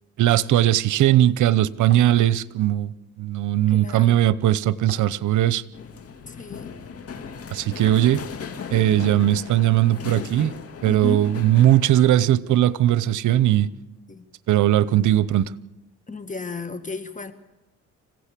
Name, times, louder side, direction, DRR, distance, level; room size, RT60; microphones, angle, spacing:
voice 1, 0.2-2.9 3.2-5.6 7.5-8.2 8.7-10.5 10.8-13.7 14.5-15.5, right 13 dB, 75° right, 0.9 m, -19 dB
sound 1, 1.9-2.8 4.9-5.3 7.9-8.3 10.9-11.3, right 4 dB, 40° right, 4.7 m, -44 dB
voice 2, 3.7-4.2 6.3-6.7 10.8-11.2 14.1-14.2 16.1-17.3, left 3 dB, 25° left, 1.8 m, -33 dB
sound 2, 5.7-12.0, left 6 dB, 50° left, 2.4 m, -37 dB
26.0 x 16.0 x 8.5 m
cardioid pair, 90°, 30 cm